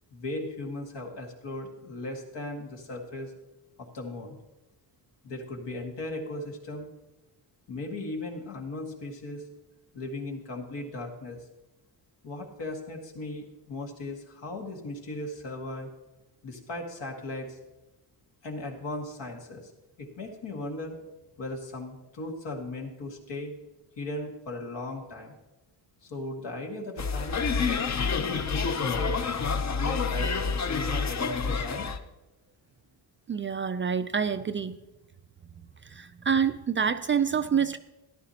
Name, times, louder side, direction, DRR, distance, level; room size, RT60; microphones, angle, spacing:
voice 1, 0.1-3.3 3.8-4.4 5.2-6.9 7.7-9.4 9.9-11.4 12.2-15.9 16.4-17.6 18.4-19.7 20.0-21.0 21.4-23.5 24.0-25.3 26.0-27.4 28.2-29.1 29.7-31.9, left 2 dB, 75° left, 1 dB, 2.0 m, -37 dB
sound 1, 27.0-32.0, left 5 dB, 40° left, 0.7 m, -28 dB
voice 2, 33.3-34.8 35.9-37.8, right 7 dB, 30° right, 11 dB, 0.3 m, -27 dB
13.5 x 11.0 x 2.9 m, 1.0 s
cardioid pair, 90°, 43 cm